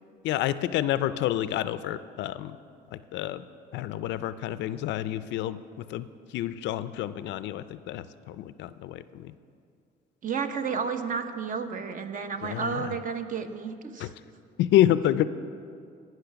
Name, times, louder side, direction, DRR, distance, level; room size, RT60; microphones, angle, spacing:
voice 1, 0.2-2.6 2.9-3.5 3.7-9.3 12.4-13.0 14.0-14.1 14.6-15.2, left 12 dB, 80° left, 14 dB, 0.4 m, -28 dB
voice 2, 10.2-14.1, right 5 dB, 45° right, 8 dB, 0.8 m, -32 dB
17.0 x 5.8 x 5.8 m, 2.4 s
cardioid pair, 95°, 19 cm